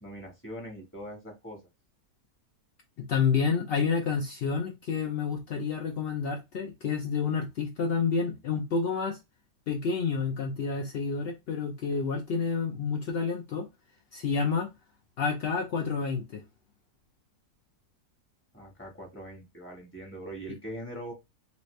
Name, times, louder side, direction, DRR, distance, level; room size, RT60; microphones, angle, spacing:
voice 1, 0.0-1.6 18.5-21.1, right 1 dB, 10° left, 1.1 m, -42 dB
voice 2, 3.0-9.2 9.7-13.7 14.1-14.7 15.2-16.4, left 5 dB, 75° left, 0.5 m, -29 dB
3.0 x 2.9 x 3.1 m
omnidirectional pair, 1.7 m